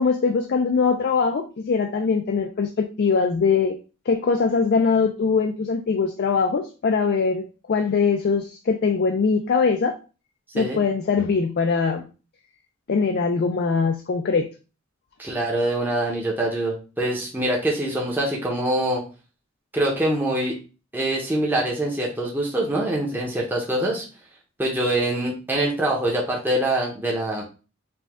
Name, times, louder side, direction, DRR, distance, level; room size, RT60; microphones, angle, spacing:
voice 1, 0.0-3.8 4.1-9.9 10.5-12.0 12.9-14.5, left 5 dB, 50° left, 4 dB, 0.4 m, -22 dB
voice 2, 15.2-19.0 19.7-20.5 20.9-24.0 24.6-27.4, right 1 dB, 10° right, -3 dB, 0.8 m, -24 dB
4.9 x 2.3 x 3.5 m, 0.34 s
head